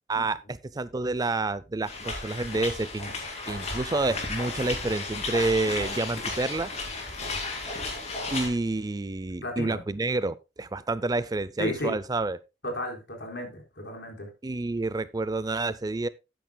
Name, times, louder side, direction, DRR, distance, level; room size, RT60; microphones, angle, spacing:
voice 1, 0.1-3.1 3.5-6.7 8.3-12.4 14.4-16.1, right 2 dB, 20° right, 0.4 m, -29 dB
sound 1, 1.9-8.5, left 3 dB, 40° left, 2.7 m, -34 dB
voice 2, 9.4-9.8 11.6-11.9 12.6-14.3, left 1 dB, 80° left, 3.9 m, -33 dB
12.5 x 9.3 x 2.2 m
head